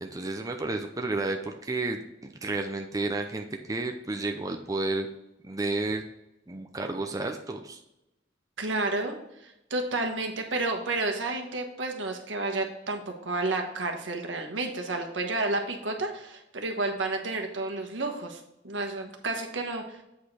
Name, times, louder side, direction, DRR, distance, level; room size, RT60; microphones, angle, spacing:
voice 1, 0.0-5.1 5.4-6.0 6.5-7.8, right 2 dB, 20° right, 4 dB, 0.6 m, -31 dB
voice 2, 8.6-9.1 9.4-20.0, right 2 dB, 80° right, 3 dB, 1.3 m, -31 dB
8.3 x 5.0 x 4.3 m, 0.87 s
head